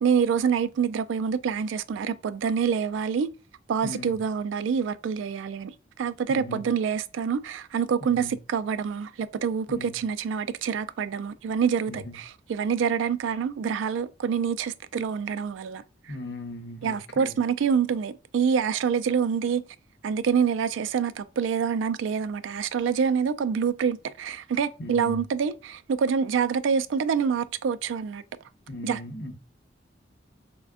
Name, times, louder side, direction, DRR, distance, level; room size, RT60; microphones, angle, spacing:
voice 1, 0.0-3.3 3.7-5.7 6.0-16.2 16.8-19.6 20.0-28.2 28.8-29.0, right 6 dB, 85° right, 0.3 m, -26 dB
voice 2, 3.8-4.2 6.3-6.6 8.0-8.3 9.7-10.0 11.9-12.1 16.1-17.3 24.8-25.2 28.7-29.3, left 1 dB, 65° left, 0.8 m, -37 dB
3.4 x 2.2 x 3.5 m
head